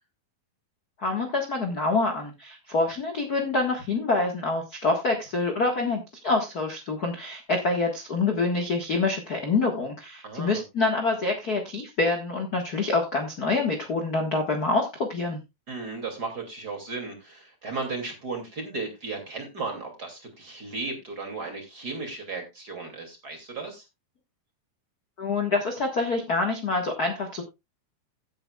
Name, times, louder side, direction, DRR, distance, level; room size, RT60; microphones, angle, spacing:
voice 1, 1.0-15.4 25.2-27.4, left 3 dB, 50° left, 3 dB, 1.1 m, -26 dB
voice 2, 10.2-10.6 15.7-23.8, right 3 dB, 30° right, 3 dB, 2.8 m, -35 dB
16.0 x 8.8 x 2.4 m, 0.23 s
omnidirectional pair, 4.3 m